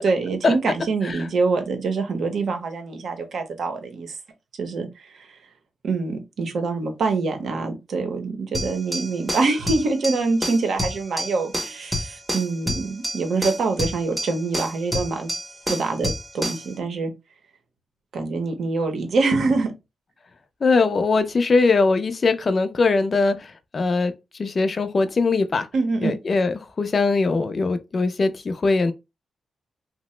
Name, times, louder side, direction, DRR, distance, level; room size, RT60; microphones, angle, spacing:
voice 1, 0.0-4.2 4.6-5.4 5.8-15.3 15.7-17.1 18.1-19.7 25.7-26.2, right 3 dB, 60° right, 0.7 m, -25 dB
sound 1, 8.5-16.7, equal, 10° right, 0.7 m, -29 dB
voice 2, 20.6-24.1 24.4-25.7 26.0-28.9, left 3 dB, 35° left, 0.4 m, -21 dB
2.8 x 2.0 x 3.1 m
wide cardioid pair, 125°, 0 cm